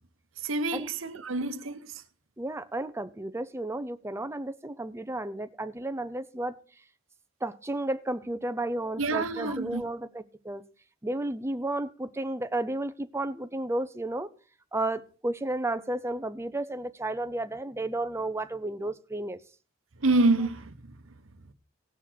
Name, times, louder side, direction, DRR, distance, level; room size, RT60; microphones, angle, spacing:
voice 1, 0.4-2.0 9.0-9.8 20.0-20.8, right 2 dB, 75° right, 1.0 m, -27 dB
voice 2, 2.4-6.6 7.4-10.6 11.0-14.3 14.7-19.4, right 1 dB, 15° right, 0.6 m, -32 dB
18.0 x 6.1 x 4.5 m
head